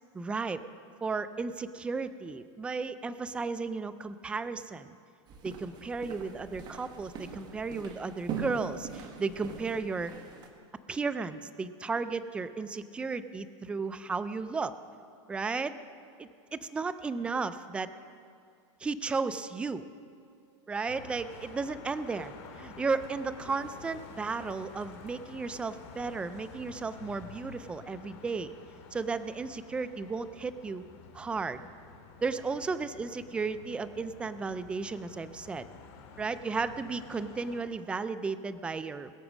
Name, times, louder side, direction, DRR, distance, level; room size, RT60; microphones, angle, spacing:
voice 1, 0.1-0.6 1.0-5.0 5.4-10.2 10.9-14.7 15.3-15.8 16.2-17.9 18.8-19.8 20.7-28.6 28.9-30.8 31.1-31.7 32.2-35.7 36.2-39.1, right 4 dB, 5° right, 12 dB, 0.3 m, -34 dB
sound 1, 5.3-10.5, right 5 dB, 25° right, 1.3 m, -42 dB
sound 2, 20.9-37.6, left 5 dB, 55° left, 2.4 m, -50 dB
21.5 x 7.2 x 6.0 m, 2.4 s
supercardioid pair, 155°, 16 cm